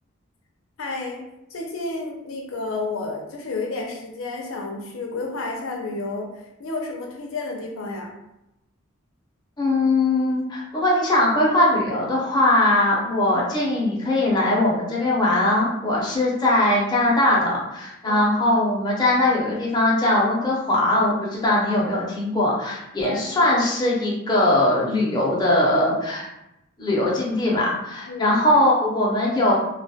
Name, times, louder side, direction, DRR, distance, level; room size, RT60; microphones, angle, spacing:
voice 1, 0.8-1.2 1.5-6.3 6.6-8.1 18.1-18.2 23.0-23.5 28.1-28.4, left 3 dB, 90° left, 0 dB, 0.5 m, -31 dB
voice 2, 9.6-26.3 26.8-29.5, left 1 dB, 20° left, -5 dB, 0.6 m, -20 dB
2.2 x 2.1 x 2.7 m, 0.86 s
head